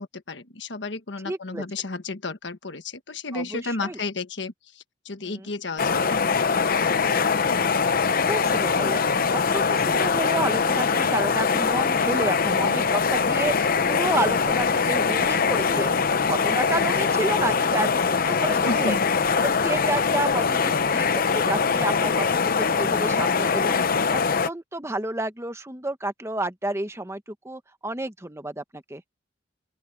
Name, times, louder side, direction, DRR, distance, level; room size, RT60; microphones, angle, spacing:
voice 1, 0.0-6.8 18.5-19.0, left 3 dB, 70° left, 1.6 m, -33 dB
voice 2, 1.2-1.6 3.3-4.0 5.2-5.5 8.2-9.1 9.5-16.0 16.2-19.0 19.4-23.8 24.1-29.0, right 1 dB, 15° right, 1.2 m, -30 dB
sound 1, 5.8-24.5, left 5 dB, 50° left, 0.8 m, -22 dB
open air
head